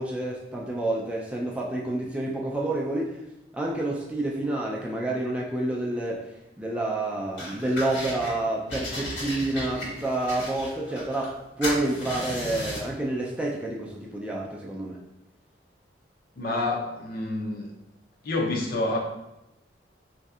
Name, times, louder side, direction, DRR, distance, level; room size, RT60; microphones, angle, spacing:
voice 1, 0.0-3.2 3.5-6.3 6.6-15.0, right 2 dB, 5° right, -3 dB, 0.3 m, -29 dB
sound 1, 7.4-8.3 8.7-11.4 11.6-12.9, left 1 dB, 85° left, 1.4 m, -35 dB
voice 2, 16.4-17.7 18.2-19.0, left 2 dB, 55° left, 0 dB, 0.6 m, -28 dB
4.1 x 2.7 x 2.3 m, 0.92 s
head